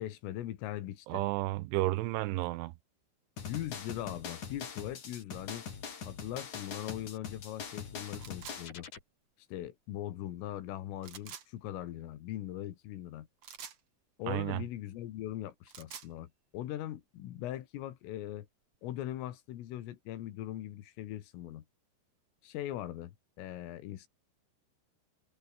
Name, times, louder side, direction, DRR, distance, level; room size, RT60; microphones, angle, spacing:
voice 1, 0.0-1.2 3.4-5.7 6.1-8.9 9.5-13.3 14.2-18.5 18.8-21.6 22.4-24.1, left 13 dB, 80° left, 4.4 m, -40 dB
voice 2, 1.1-2.7 14.3-14.6, right 18 dB, 80° right, 3.0 m, -32 dB
sound 1, 3.4-9.0, left 6 dB, 40° left, 4.3 m, -43 dB
sound 2, 8.2-8.6 11.0-11.5 13.4-13.8 15.5-16.1, right 8 dB, 55° right, 1.8 m, -47 dB
omnidirectional pair, 5.9 m